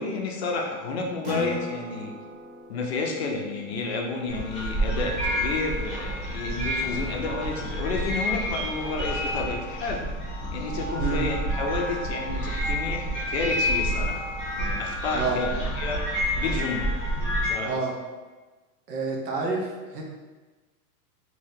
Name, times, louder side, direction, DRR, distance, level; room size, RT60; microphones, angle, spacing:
voice 1, 0.0-2.1 2.7-10.0 10.5-14.2 14.5-16.0 16.4-16.9 17.4-17.8, left 3 dB, 45° left, 1 dB, 0.5 m, -31 dB
Acoustic guitar, 1.2-6.2, left 1 dB, 30° right, 0.6 m, -40 dB
sound 1, 4.3-17.5, equal, ahead, 1.0 m, -29 dB
voice 2, 18.9-20.0, right 4 dB, 80° right, 0 dB, 1.0 m, -28 dB
3.5 x 2.8 x 2.7 m, 1.3 s
supercardioid pair, 170°, 46 cm